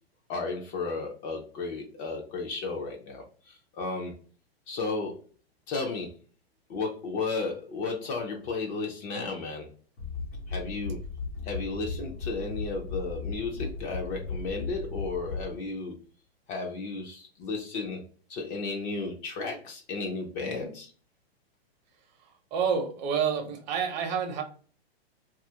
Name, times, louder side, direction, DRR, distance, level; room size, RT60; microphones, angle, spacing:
voice 1, 0.3-4.1 4.7-5.2 5.7-6.1 6.7-9.7 10.5-11.0 11.4-16.0 16.5-18.0 18.3-20.9, left 3 dB, 25° left, 1 dB, 0.4 m, -34 dB
sound 1, 10.0-15.8, left 4 dB, 80° left, 0.9 m, -36 dB
voice 2, 22.5-24.4, right 7 dB, 45° right, 4 dB, 0.7 m, -28 dB
2.7 x 2.4 x 2.7 m, 0.41 s
hypercardioid pair, 130°, 31 cm